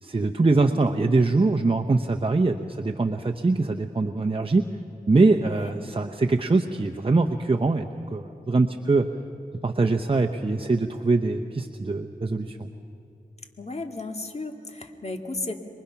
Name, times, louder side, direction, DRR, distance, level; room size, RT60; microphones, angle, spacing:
voice 1, 0.0-4.6 5.1-9.1 9.6-12.7, right 3 dB, 35° right, 4 dB, 0.8 m, -23 dB
voice 2, 13.6-15.5, left 2 dB, 45° left, 4 dB, 2.2 m, -34 dB
27.5 x 23.0 x 5.9 m, 2.9 s
wide cardioid pair, 60°, 16 cm